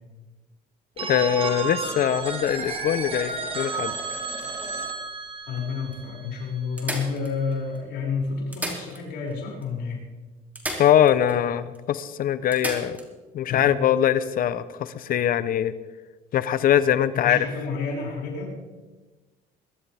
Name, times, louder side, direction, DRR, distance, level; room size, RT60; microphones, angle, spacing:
voice 1, 1.0-3.9 10.8-13.0 13.3-15.7 16.3-17.4, left 10 dB, 55° left, 14 dB, 0.9 m, -22 dB
Telephone, 1.0-6.7, right 4 dB, 35° right, 1.9 m, -32 dB
sound 1, 3.3-4.9 5.6-5.7 5.9-6.0 6.8-7.8 8.4-9.4 9.6-9.7 10.6-11.4 11.7-11.8 12.5-13.1 15.1-15.2, right 1 dB, 10° right, 2.9 m, -36 dB
voice 2, 5.5-10.0 13.5-13.7 17.1-18.6, left 5 dB, 80° left, -3 dB, 6.3 m, -30 dB
22.5 x 12.5 x 3.5 m, 1.2 s
cardioid pair, 110°, 17 cm